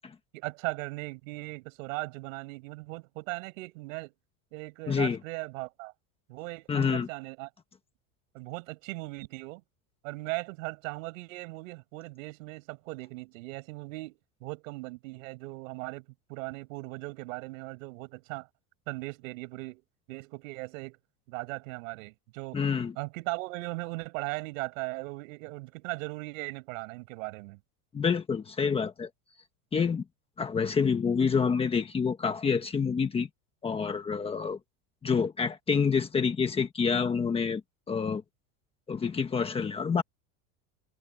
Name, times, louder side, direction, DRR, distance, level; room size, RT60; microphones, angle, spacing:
voice 1, 0.3-4.1 4.5-5.9 6.3-7.5 8.3-9.6 10.0-18.5 18.9-19.8 20.1-21.0 21.3-22.6 23.0-27.6, right 24 dB, 65° right, 5.9 m, -38 dB
voice 2, 4.9-5.2 6.7-7.1 22.5-22.9 27.9-29.1 29.7-30.0 30.4-33.3 33.6-34.6 35.0-37.6 37.9-38.2 38.9-40.0, left 6 dB, 15° left, 1.3 m, -27 dB
cardioid pair, 175°, 43 cm